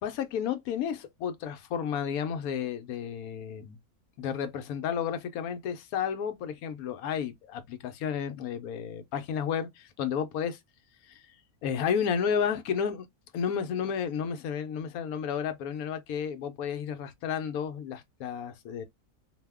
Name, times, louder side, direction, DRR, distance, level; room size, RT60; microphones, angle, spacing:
voice 1, 0.0-3.8 4.2-10.6 11.1-11.3 11.6-13.1 13.3-18.8, left 7 dB, 75° left, 1.1 m, -32 dB
2.7 x 2.0 x 3.4 m
omnidirectional pair, 1.6 m